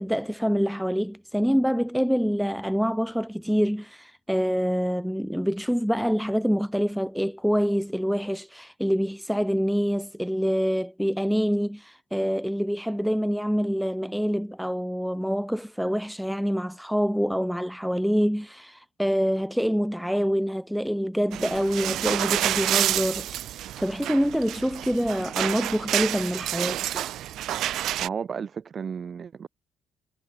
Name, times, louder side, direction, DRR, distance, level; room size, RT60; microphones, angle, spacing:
voice 1, 0.0-27.0, equal, ahead, 0.9 m, -26 dB
sound 1, 21.3-28.1, right 13 dB, 70° right, 0.9 m, -29 dB
voice 2, 28.0-29.5, right 6 dB, 45° right, 0.6 m, -33 dB
supercardioid pair, 85°, 0 cm